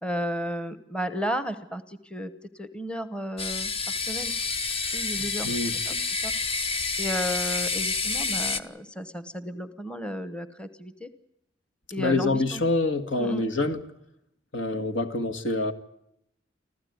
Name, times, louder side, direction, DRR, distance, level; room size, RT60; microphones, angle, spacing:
voice 1, 0.0-4.3 4.9-6.3 6.7-11.1 11.9-12.6 13.2-13.5, equal, 5° left, 12 dB, 1.0 m, -33 dB
sound 1, 3.4-8.6, left 4 dB, 30° left, 1.0 m, -29 dB
voice 2, 5.4-5.8 12.0-13.8 14.5-15.7, left 2 dB, 75° left, 7 dB, 2.1 m, -26 dB
26.0 x 15.0 x 9.5 m, 0.80 s
head